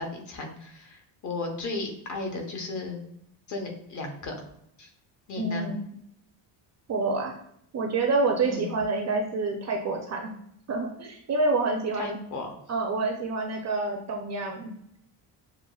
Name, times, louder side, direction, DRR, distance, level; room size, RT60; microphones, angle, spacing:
voice 1, 0.0-3.0 3.5-4.3 4.8-4.9 5.3-5.7 8.4-8.7 12.0-12.5, left 3 dB, 40° left, 2 dB, 0.8 m, -35 dB
voice 2, 5.4-5.7 6.9-7.3 7.7-10.3 10.7-12.2 12.7-14.7, right 3 dB, 35° right, 2 dB, 0.5 m, -27 dB
6.9 x 2.4 x 2.3 m, 0.73 s
cardioid pair, 165°, 47 cm